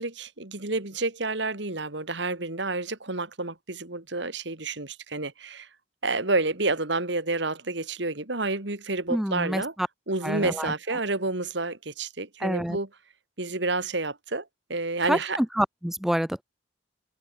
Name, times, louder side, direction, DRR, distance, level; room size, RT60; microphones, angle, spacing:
voice 1, 0.0-5.7 6.0-9.7 10.1-12.9 13.4-15.4, right 3 dB, 60° right, 2.6 m, -29 dB
voice 2, 9.1-9.9 10.2-10.7 12.4-12.8 15.1-16.4, equal, ahead, 0.3 m, -27 dB
head